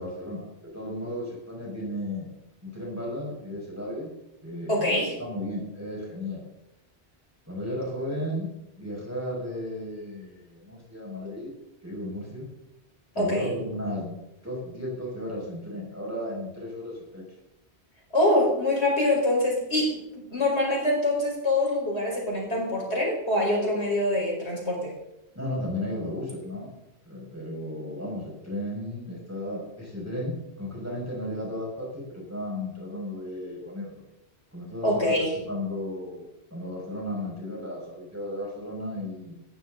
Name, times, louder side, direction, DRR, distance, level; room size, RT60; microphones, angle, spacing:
voice 1, 0.0-2.3 2.6-4.1 4.4-6.4 7.5-8.5 8.8-11.5 11.8-12.5 13.1-14.2 14.4-17.2 25.3-26.8 27.0-34.0 34.5-35.2 35.4-39.3, left 1 dB, 15° right, -3 dB, 6.3 m, -34 dB
voice 2, 4.7-5.1 13.2-13.5 18.1-24.9 34.8-35.3, left 1 dB, 80° left, -2 dB, 5.4 m, -25 dB
18.0 x 14.0 x 4.0 m, 0.89 s
omnidirectional pair, 1.1 m